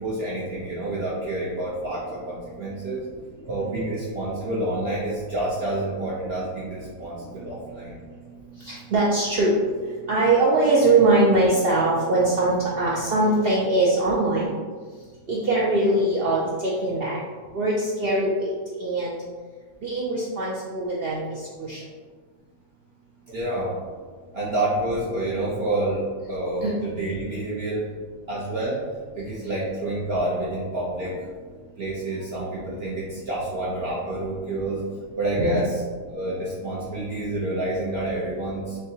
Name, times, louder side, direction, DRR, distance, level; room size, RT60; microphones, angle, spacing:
voice 1, 0.0-3.0 3.4-7.9 23.3-23.7 24.3-27.8 28.3-28.8 29.2-31.2 31.8-34.8 35.2-35.8 36.1-38.8, right 1 dB, 50° right, -7 dB, 0.8 m, -28 dB
voice 2, 8.7-9.6 10.1-14.6 15.3-17.2 17.5-18.5 18.8-19.2 19.8-21.8 26.6-26.7 35.4-35.6, right 2 dB, 75° right, -5 dB, 0.5 m, -22 dB
6.3 x 2.2 x 2.7 m, 1.5 s
omnidirectional pair, 1.7 m